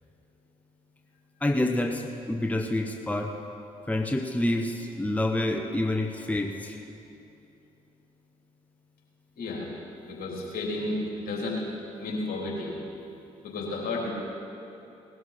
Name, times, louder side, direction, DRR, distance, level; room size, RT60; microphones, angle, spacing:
voice 1, 1.4-3.4 3.9-6.8, left 1 dB, 10° left, 4 dB, 1.0 m, -28 dB
voice 2, 9.4-9.7 10.1-11.0 11.2-11.6 12.0-12.7 13.4-14.1, left 2 dB, 60° left, -3 dB, 3.7 m, -32 dB
19.0 x 12.5 x 4.3 m, 2.8 s
hypercardioid pair, 50°, 17 cm